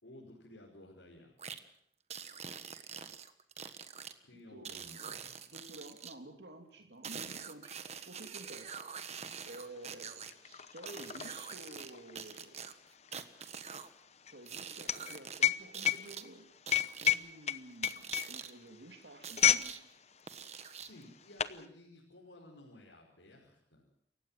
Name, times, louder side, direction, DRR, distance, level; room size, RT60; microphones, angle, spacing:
voice 1, 0.0-1.4 4.2-5.4 20.7-23.9, left 1 dB, 85° left, -2 dB, 5.3 m, -55 dB
Very Weird Mouth Tongue Sound, 1.4-1.6 2.1-4.1 4.6-6.1 7.0-10.3 10.9-11.9 12.2-13.9 14.5-15.4 15.7-16.2 16.7-17.1 17.8-18.5 19.2-19.8 20.3-21.0, right 7 dB, 35° right, 1.4 m, -45 dB
voice 2, 4.3-4.7 5.5-8.8 9.4-12.6 14.3-16.5 16.9-19.8, right 1 dB, 70° right, 4 dB, 3.0 m, -51 dB
sound 1, 9.4-9.5 9.8-19.7 20.0-20.3 21.0-21.6, left 10 dB, 40° left, 0.9 m, -32 dB
28.5 x 15.5 x 7.6 m, 0.68 s
head